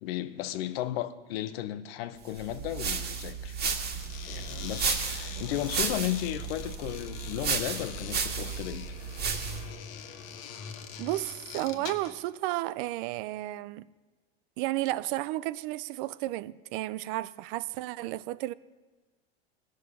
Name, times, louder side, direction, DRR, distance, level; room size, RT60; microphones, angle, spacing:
voice 1, 0.0-3.6 4.2-8.9, left 13 dB, 70° left, 0.9 m, -34 dB
sound 1, 2.4-9.7, right 5 dB, 30° right, 1.7 m, -33 dB
sound 2, 3.9-12.2, left 7 dB, 50° left, 1.4 m, -43 dB
voice 2, 11.0-13.9 14.6-18.5, right 17 dB, 60° right, 0.5 m, -33 dB
16.5 x 6.4 x 5.6 m
hypercardioid pair, 110°, 31 cm